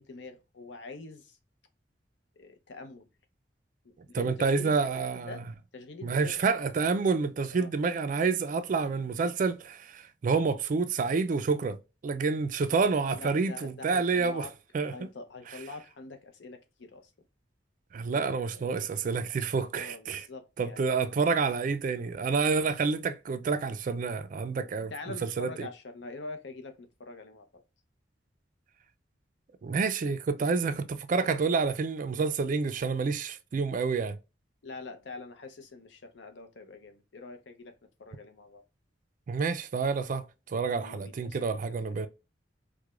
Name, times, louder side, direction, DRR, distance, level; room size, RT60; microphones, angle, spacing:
voice 1, 0.0-1.4 2.4-3.1 3.8-5.4 5.7-6.5 7.5-7.7 13.1-14.5 14.9-17.1 18.4-18.8 19.8-21.1 24.9-27.6 34.6-37.7 38.0-38.6 40.7-42.0, left 3 dB, 70° left, 0.6 m, -45 dB
voice 2, 4.1-5.4 6.0-11.8 12.0-14.5 14.7-14.9 15.5-15.6 17.9-20.3 20.6-25.7 29.6-34.2 39.3-42.1, right 4 dB, 45° right, 0.3 m, -28 dB
4.7 x 2.2 x 2.3 m
head